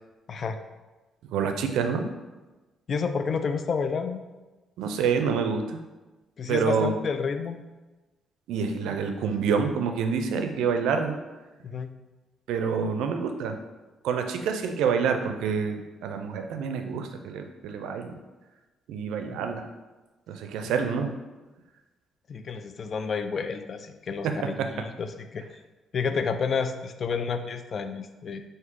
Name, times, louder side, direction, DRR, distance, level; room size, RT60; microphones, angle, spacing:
voice 1, 1.3-2.1 4.8-5.8 6.5-6.9 8.5-11.2 12.5-13.6 14.0-18.1 18.9-19.7 20.3-21.1 24.2-24.4, right 6 dB, 85° right, 6 dB, 0.4 m, -27 dB
voice 2, 2.9-4.2 6.4-7.6 11.6-11.9 19.3-19.4 22.3-25.4 25.9-28.4, left 5 dB, 50° left, 9 dB, 0.3 m, -30 dB
4.6 x 2.7 x 3.6 m, 1.2 s
cardioid pair, 90°, 0 cm